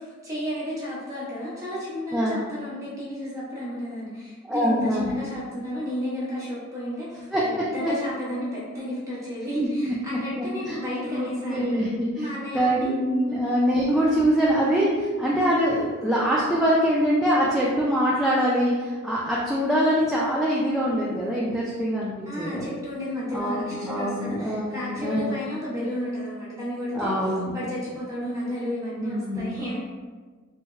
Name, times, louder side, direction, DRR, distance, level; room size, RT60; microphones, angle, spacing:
voice 1, 0.0-11.8 12.1-13.5 22.2-29.8, left 1 dB, 15° right, -8 dB, 1.0 m, -32 dB
voice 2, 4.5-5.1 7.3-7.9 9.6-9.9 10.4-10.8 11.1-12.3 12.5-22.1 22.4-22.7 23.3-25.4 26.9-27.5 29.0-29.6, equal, ahead, -7 dB, 0.3 m, -24 dB
3.4 x 2.1 x 3.1 m, 1.4 s
head